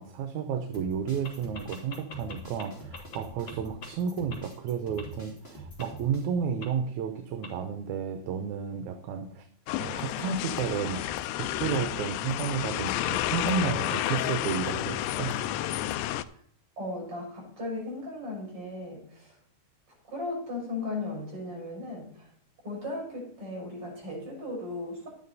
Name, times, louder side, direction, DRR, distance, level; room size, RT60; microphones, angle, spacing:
voice 1, 0.0-9.5 9.8-11.0 11.6-15.4, right 6 dB, 75° right, 7 dB, 2.2 m, -32 dB
sound 1, 0.7-6.2, equal, 20° left, 2.7 m, -45 dB
sound 2, 1.2-1.3 1.5-2.6 2.9-3.2 3.5-3.6 3.8-3.9 4.3-4.4 5.0-5.1 5.8-5.9 6.6-6.7 7.4-7.5, left 5 dB, 45° left, 2.3 m, -41 dB
sound 3, 9.7-16.2, left 13 dB, 90° left, 2.1 m, -31 dB
voice 2, 16.8-19.4 20.1-22.3 22.6-25.1, left 2 dB, 45° right, -2 dB, 6.6 m, -36 dB
11.0 x 9.8 x 4.1 m, 0.65 s
omnidirectional pair, 3.5 m